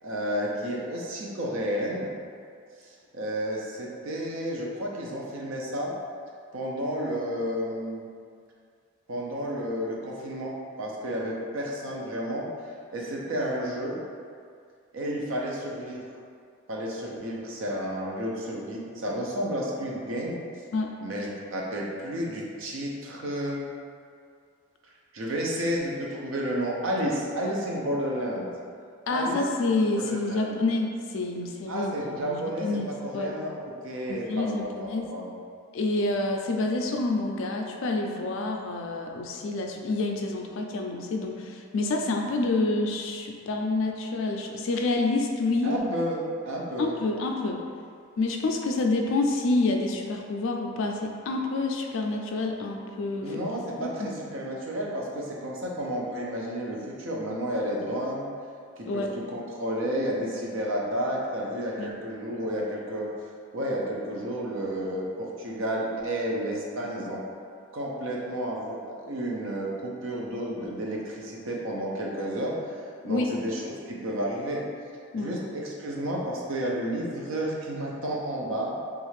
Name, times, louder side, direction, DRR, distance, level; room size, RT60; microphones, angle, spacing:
voice 1, 0.0-2.1 2.8-5.9 6.5-8.1 9.1-12.5 12.9-14.0 14.9-16.0 16.7-20.4 21.0-23.6 25.1-28.5 29.1-29.4 30.0-30.6 31.7-32.7 33.0-35.4 45.6-46.9 53.2-58.3 58.8-63.1 63.5-67.2 67.7-72.8 73.0-74.6 75.1-78.7, equal, 60° right, -2 dB, 0.5 m, -31 dB
voice 2, 29.1-33.3 34.1-35.1 35.7-45.8 46.8-47.6 48.2-53.4 53.8-54.2 58.8-59.1 61.8-61.9 73.0-73.3 75.1-75.3, left 2 dB, 60° left, 2 dB, 0.3 m, -28 dB
3.2 x 2.4 x 3.1 m, 2.2 s
head